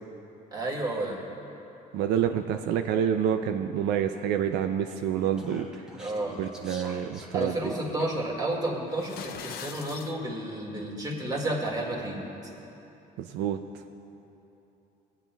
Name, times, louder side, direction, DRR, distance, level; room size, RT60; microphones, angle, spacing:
voice 1, 0.5-1.2 6.0-6.4 7.3-12.2, right 1 dB, 25° right, -2 dB, 1.9 m, -31 dB
voice 2, 1.9-5.7 6.4-7.7 13.2-13.6, right 9 dB, 85° right, 7 dB, 0.4 m, -28 dB
Speech, 4.9-8.3, equal, 5° right, 1.3 m, -48 dB
sound 1, 8.9-10.1, left 8 dB, 65° left, 0.5 m, -41 dB
19.5 x 8.9 x 2.3 m, 3.0 s
cardioid pair, 110°, 17 cm